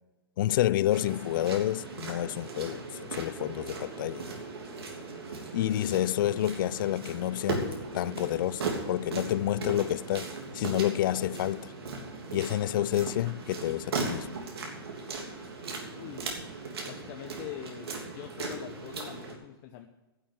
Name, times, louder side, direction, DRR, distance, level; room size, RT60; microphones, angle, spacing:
voice 1, 0.4-4.2 5.5-10.3 10.5-11.7 12.3-14.3, left 13 dB, 60° left, 0.4 m, -29 dB
sound 1, 0.9-19.3, right 3 dB, 80° right, 3.2 m, -38 dB
voice 2, 15.7-16.3 16.9-19.9, left 11 dB, 40° left, 0.9 m, -44 dB
11.0 x 6.4 x 9.3 m
hypercardioid pair, 135°, 13 cm